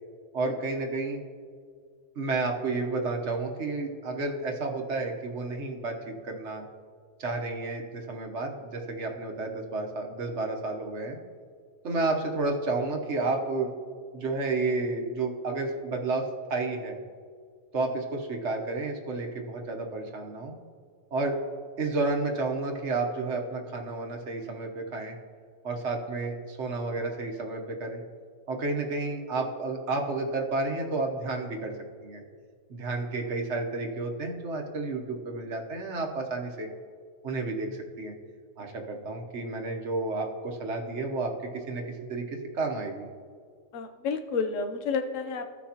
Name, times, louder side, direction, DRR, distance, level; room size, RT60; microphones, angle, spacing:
voice 1, 0.3-1.2 2.2-6.6 7.2-11.2 11.8-13.7 14.1-17.0 17.7-20.5 21.1-21.4 21.8-25.1 25.6-28.0 28.5-31.7 32.0-32.2 32.7-36.7 37.2-38.1 38.6-42.3 42.5-43.1, right 3 dB, 55° right, 2 dB, 1.1 m, -31 dB
voice 2, 43.7-45.5, left 5 dB, 65° left, 7 dB, 1.0 m, -30 dB
16.0 x 6.2 x 2.8 m, 2.1 s
omnidirectional pair, 1.5 m